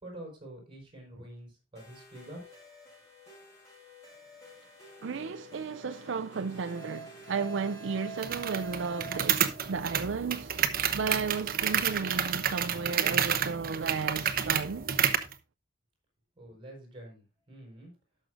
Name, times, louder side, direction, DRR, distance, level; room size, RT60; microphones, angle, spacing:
voice 1, 0.0-2.4 16.4-17.9, right 1 dB, 30° right, 5.2 m, -47 dB
sound 1, 1.8-9.8, right 2 dB, 15° left, 5.9 m, -48 dB
voice 2, 5.0-10.6 10.9-14.9, right 5 dB, 80° right, 0.5 m, -34 dB
sound 2, 8.2-15.3, right 8 dB, 50° right, 0.9 m, -29 dB
18.5 x 6.4 x 2.5 m
head